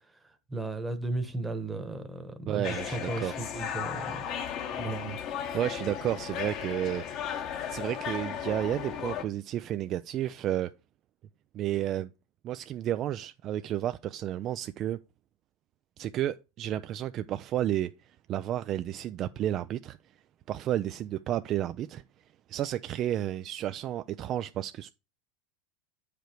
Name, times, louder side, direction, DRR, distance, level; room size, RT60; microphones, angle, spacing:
voice 1, 0.0-4.2 4.7-5.2, right 2 dB, 10° right, 1.1 m, -36 dB
voice 2, 2.5-3.3 5.5-10.7 11.5-12.1 12.4-15.0 16.0-17.9 18.3-20.0 20.5-22.0 22.5-24.9, right 12 dB, 40° right, 0.3 m, -32 dB
sound 1, 2.6-9.2, left 8 dB, 45° left, 1.0 m, -35 dB
7.9 x 5.0 x 4.5 m
supercardioid pair, 135°, 0 cm